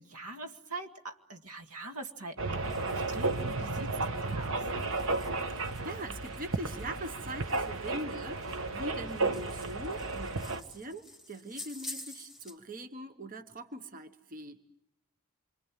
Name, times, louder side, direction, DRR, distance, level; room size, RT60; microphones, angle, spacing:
voice 1, 0.0-4.7, right 2 dB, 85° right, 6 dB, 2.1 m, -43 dB
sound 1, 2.4-10.6, right 3 dB, 60° right, 1.4 m, -33 dB
sound 2, 2.6-12.6, left 2 dB, ahead, 2.5 m, -51 dB
voice 2, 5.5-14.6, right 1 dB, 40° right, 9 dB, 1.2 m, -42 dB
27.5 x 25.0 x 7.5 m, 0.76 s
head